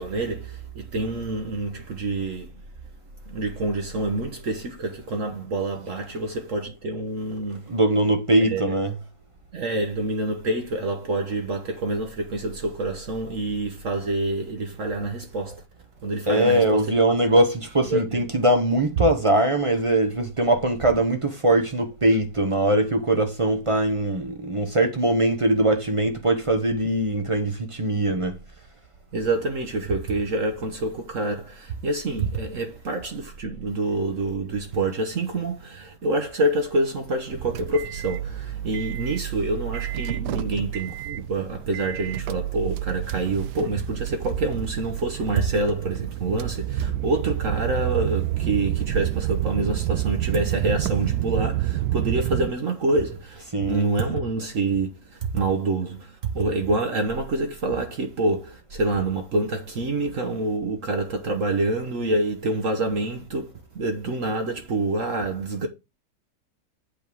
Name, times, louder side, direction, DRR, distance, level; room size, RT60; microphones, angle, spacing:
voice 1, 0.0-2.5 3.3-7.7 8.4-8.7 9.5-15.6 16.0-16.8 17.9-18.2 29.1-65.7, right 2 dB, 55° right, 1.3 m, -27 dB
voice 2, 7.7-9.0 16.3-28.4 53.5-53.9, right 1 dB, 30° right, 0.7 m, -21 dB
sound 1, 37.3-52.5, right 13 dB, 80° right, 1.1 m, -29 dB
8.3 x 3.5 x 6.2 m
omnidirectional pair, 1.8 m